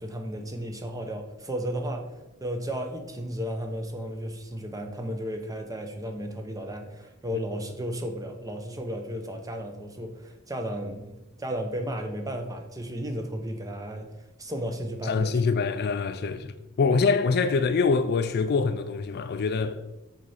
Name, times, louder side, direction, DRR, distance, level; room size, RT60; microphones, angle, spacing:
voice 1, 0.0-2.1 2.4-14.1 14.4-15.4 16.9-17.0 19.7-19.8, equal, 15° right, 0.8 m, -34 dB
voice 2, 15.1-19.8, left 4 dB, 45° left, 0.4 m, -25 dB
6.1 x 4.4 x 5.6 m
head